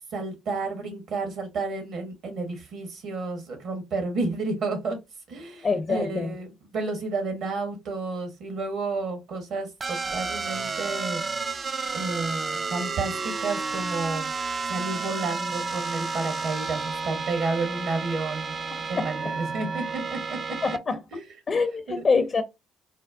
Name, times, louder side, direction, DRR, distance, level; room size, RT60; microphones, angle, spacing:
voice 1, 0.1-5.0 5.3-11.2 11.9-14.3 14.6-20.4 21.1-21.2 21.9-22.0, right 3 dB, 70° right, 1.3 m, -31 dB
voice 2, 5.6-6.3 19.0-19.1 20.6-21.0 21.5-22.4, left 4 dB, 45° left, 0.5 m, -24 dB
sound 1, 9.8-20.8, right 4 dB, 35° right, 0.3 m, -31 dB
4.2 x 2.1 x 2.5 m
supercardioid pair, 60°, 0 cm